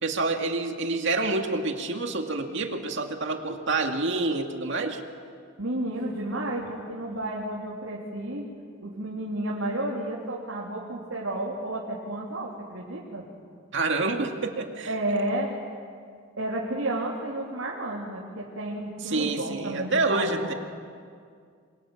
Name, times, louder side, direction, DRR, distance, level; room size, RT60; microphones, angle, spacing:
voice 1, 0.0-5.0 13.7-14.9 19.0-20.5, right 3 dB, 65° right, 4 dB, 2.2 m, -27 dB
voice 2, 5.6-8.4 8.8-13.3 14.9-15.5 16.4-20.5, right 1 dB, 85° right, -4 dB, 3.5 m, -31 dB
29.5 x 24.0 x 7.3 m, 2.1 s
head